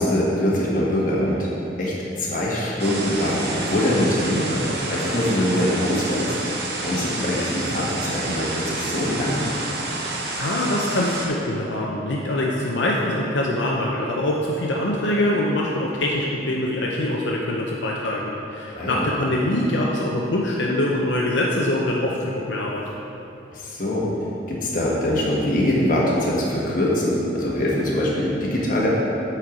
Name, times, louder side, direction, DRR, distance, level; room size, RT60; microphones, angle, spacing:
voice 1, 0.0-1.5 1.8-6.4 6.8-9.4 18.7-19.1 23.5-24.0 24.5-28.9, left 1 dB, 45° left, -5 dB, 1.4 m, -23 dB
sound 1, 2.8-11.3, right 2 dB, 60° right, 1.0 m, -29 dB
voice 2, 10.4-22.9, left 1 dB, 80° left, -3 dB, 0.7 m, -24 dB
8.2 x 4.5 x 5.0 m, 2.9 s
head